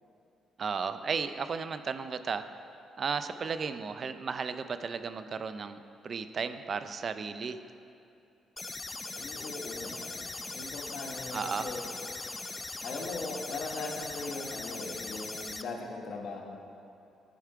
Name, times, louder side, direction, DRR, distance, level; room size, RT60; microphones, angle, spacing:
voice 1, 0.6-2.5 3.0-7.6 11.3-11.7, right 5 dB, 45° right, 11 dB, 0.4 m, -34 dB
sound 1, 8.6-15.6, left 3 dB, 25° left, 0.4 m, -40 dB
voice 2, 9.1-11.8 12.8-16.6, left 3 dB, 65° left, 0 dB, 1.1 m, -39 dB
10.5 x 4.8 x 4.6 m, 2.6 s
cardioid pair, 90°, 0 cm